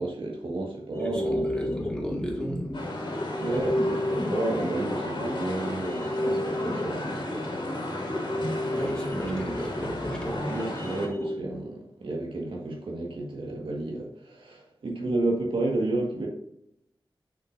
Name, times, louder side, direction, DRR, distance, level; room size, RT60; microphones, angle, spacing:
voice 1, 0.0-1.8 3.4-7.6 9.1-9.6 10.5-16.3, right 2 dB, 80° right, 1.7 m, -31 dB
sound 1, 0.9-11.4, left 1 dB, 30° left, 1.5 m, -33 dB
voice 2, 1.5-2.8 3.5-3.7 8.7-10.5, equal, 10° left, 2.2 m, -33 dB
sound 2, 2.7-11.1, left 1 dB, 65° left, 2.3 m, -34 dB
6.7 x 6.4 x 2.7 m
wide cardioid pair, 100°, 9 cm